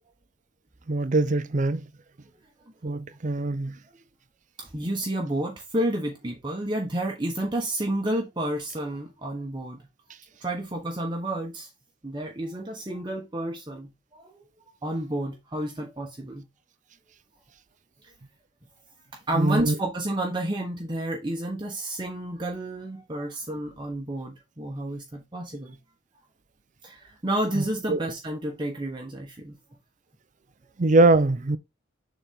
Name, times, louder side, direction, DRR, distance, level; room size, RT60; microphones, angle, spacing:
voice 1, 0.9-1.8 2.8-3.7 19.3-19.7 27.9-28.0 30.8-31.6, right 2 dB, 40° right, 0.6 m, -22 dB
voice 2, 4.6-9.9 10.4-11.7 12.0-14.3 14.8-16.5 19.3-25.8 26.8-29.6, right 1 dB, 25° right, 1.0 m, -30 dB
7.1 x 4.1 x 3.6 m
head